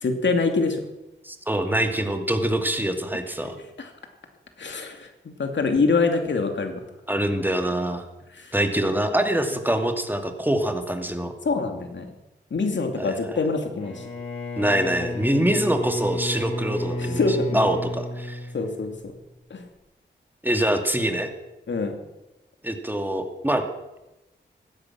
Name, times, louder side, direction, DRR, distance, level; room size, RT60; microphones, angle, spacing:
voice 1, 0.0-0.8 3.8-3.9 4.6-6.8 8.3-8.5 11.4-12.1 12.5-14.0 17.0-17.7 18.5-19.1 19.5-19.6 21.7-22.0, left 4 dB, 75° left, 5 dB, 2.5 m, -25 dB
voice 2, 1.2-3.5 7.1-8.0 8.5-11.3 13.0-13.4 14.6-18.4 20.4-21.3 22.6-23.6, right 1 dB, 10° right, 5 dB, 2.4 m, -24 dB
Bowed string instrument, 13.7-19.1, left 1 dB, 30° left, 5.4 m, -32 dB
16.5 x 12.5 x 6.1 m, 0.99 s
cardioid pair, 55°, 19 cm